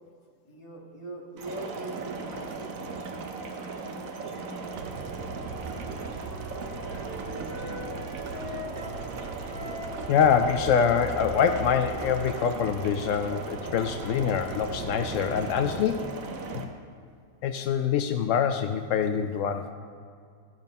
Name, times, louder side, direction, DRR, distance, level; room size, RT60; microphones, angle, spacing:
voice 1, 0.4-2.8, right 2 dB, 15° left, -3 dB, 1.6 m, -41 dB
sound 1, 1.4-16.6, right 4 dB, 55° right, 1.2 m, -37 dB
sound 2, 4.7-15.9, right 4 dB, 75° right, 1.4 m, -41 dB
Wind instrument woodwind instrument, 5.8-9.0 9.5-12.8, left 1 dB, 40° right, 2.6 m, -43 dB
voice 2, 10.1-16.1 16.5-16.7 17.4-19.7, left 7 dB, 80° left, 7 dB, 0.7 m, -25 dB
13.5 x 7.3 x 5.3 m, 2.2 s
omnidirectional pair, 1.9 m